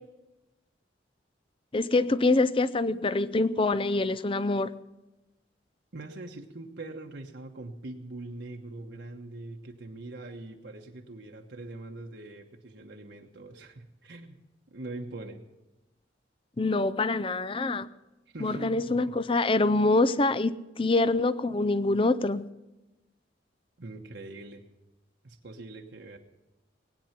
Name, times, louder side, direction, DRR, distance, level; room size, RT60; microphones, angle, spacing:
voice 1, 1.7-4.7 16.6-17.9 18.4-22.5, left 2 dB, 30° left, 15 dB, 0.5 m, -25 dB
voice 2, 5.9-14.4 14.7-15.4 18.3-19.2 23.8-24.6 25.2-26.2, right 2 dB, 65° right, 1 dB, 1.2 m, -42 dB
20.0 x 9.5 x 5.9 m, 1.0 s
head